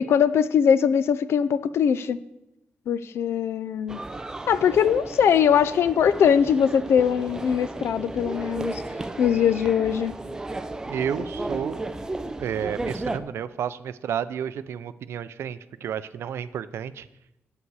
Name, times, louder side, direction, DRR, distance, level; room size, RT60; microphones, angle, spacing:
voice 1, 0.0-2.2 2.9-4.0 4.5-8.8 9.2-10.1, left 8 dB, 75° left, 14 dB, 0.5 m, -21 dB
sound 1, 3.9-13.2, right 2 dB, 15° right, 0.5 m, -34 dB
voice 2, 10.9-11.9 12.4-17.1, right 8 dB, 85° right, 15 dB, 0.4 m, -31 dB
9.7 x 8.4 x 4.7 m, 0.91 s
wide cardioid pair, 155°, 4 cm